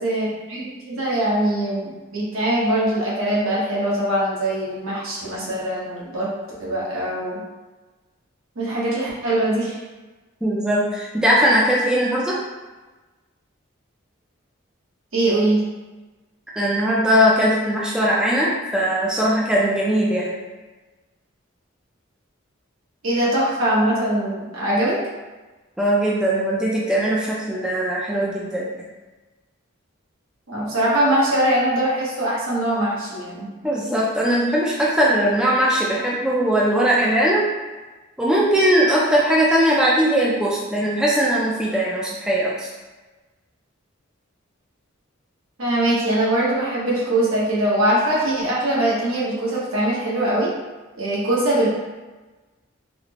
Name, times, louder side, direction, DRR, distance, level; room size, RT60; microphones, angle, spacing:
voice 1, 0.0-6.3 6.6-7.4 8.6-9.8 15.1-15.6 23.0-25.0 30.5-33.5 45.6-50.5 50.9-51.7, right 1 dB, 80° right, -6 dB, 1.1 m, -22 dB
voice 2, 10.4-12.4 16.6-20.3 25.8-28.7 33.6-37.4 38.2-42.7, equal, 5° right, -6 dB, 0.3 m, -20 dB
4.1 x 2.0 x 2.9 m, 1.2 s
head